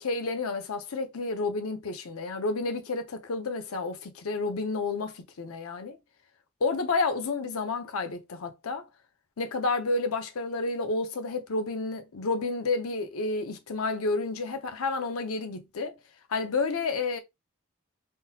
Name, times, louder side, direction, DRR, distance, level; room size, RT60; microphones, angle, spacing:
voice 1, 0.0-6.0 6.6-8.8 9.4-15.9 16.3-17.2, left 3 dB, 90° left, 0.6 m, -30 dB
3.7 x 2.7 x 2.2 m
head